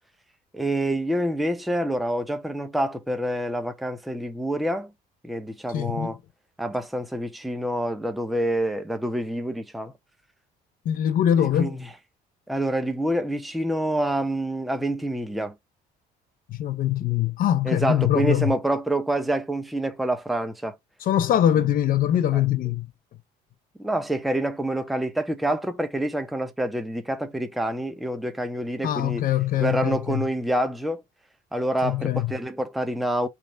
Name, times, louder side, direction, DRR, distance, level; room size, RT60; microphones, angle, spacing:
voice 1, 0.5-4.9 5.2-6.2 6.6-9.9 11.4-11.9 12.5-15.5 17.6-20.8 22.3-22.4 23.8-29.2 29.6-31.0 31.5-33.3, right 1 dB, ahead, 0.5 m, -27 dB
voice 2, 5.7-6.1 10.9-11.8 16.5-18.5 21.0-22.9 28.8-30.2 31.8-32.3, left 11 dB, 55° left, 0.5 m, -23 dB
3.2 x 2.4 x 4.3 m
cardioid pair, 110°, 17 cm